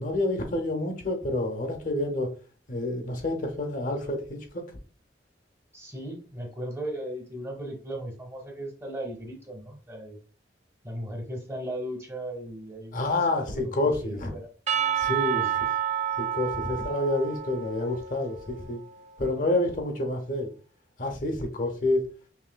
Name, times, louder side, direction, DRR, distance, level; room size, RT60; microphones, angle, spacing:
voice 1, 0.0-2.3 2.7-4.6 12.9-14.3 15.0-15.5 16.2-18.8 19.2-20.5 21.0-22.0, left 2 dB, 50° left, 4 dB, 0.7 m, -28 dB
voice 2, 5.7-10.2 10.8-13.0 13.5-13.7 14.0-14.5 15.0-15.5, right 1 dB, 15° right, 3 dB, 0.8 m, -37 dB
Percussion / Church bell, 14.7-19.0, right 9 dB, 40° right, 0.4 m, -30 dB
5.5 x 2.7 x 2.2 m, 0.38 s
head